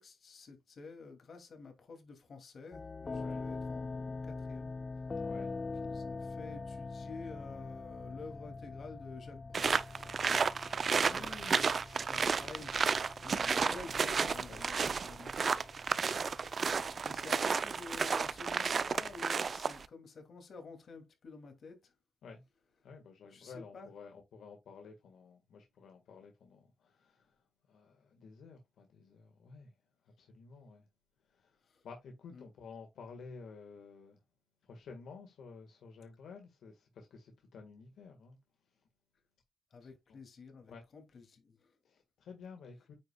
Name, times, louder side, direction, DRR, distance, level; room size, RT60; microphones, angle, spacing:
voice 1, 0.0-5.1 5.8-9.8 10.4-11.3 11.8-16.1 17.0-21.9 23.3-23.9 31.6-31.8 32.3-32.4 39.7-41.7, left 4 dB, 60° left, 2.6 m, -50 dB
sound 1, 2.7-19.2, left 3 dB, 35° left, 0.3 m, -44 dB
voice 2, 3.1-3.5 5.2-5.5 10.9-11.9 14.5-14.7 16.1-16.2 22.2-22.4 22.8-27.4 27.7-29.7 30.2-30.9 31.3-34.2 34.6-38.4 39.8-40.2 40.7-40.8 41.9-43.0, left 4 dB, 90° left, 1.7 m, -52 dB
sound 2, 9.5-19.8, right 5 dB, 50° right, 0.5 m, -32 dB
9.1 x 5.6 x 2.3 m
cardioid pair, 90°, 0 cm